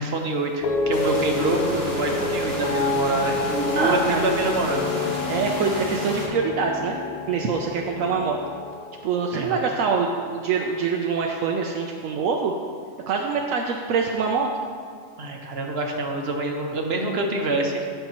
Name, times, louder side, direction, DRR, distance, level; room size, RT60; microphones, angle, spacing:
voice 1, 0.0-4.9 9.3-9.6 15.2-17.8, right 2 dB, 55° right, 2 dB, 1.1 m, -26 dB
sound 1, 0.6-11.0 11.3-11.8, left 3 dB, 70° left, 0.4 m, -29 dB
sound 2, 0.9-6.3, equal, 50° left, 2.1 m, -32 dB
voice 2, 3.7-4.3 5.3-7.0 7.3-8.4 9.0-12.5 13.1-14.5, right 5 dB, 80° right, 1 dB, 1.0 m, -24 dB
14.5 x 5.8 x 2.9 m, 2.1 s
omnidirectional pair, 1.4 m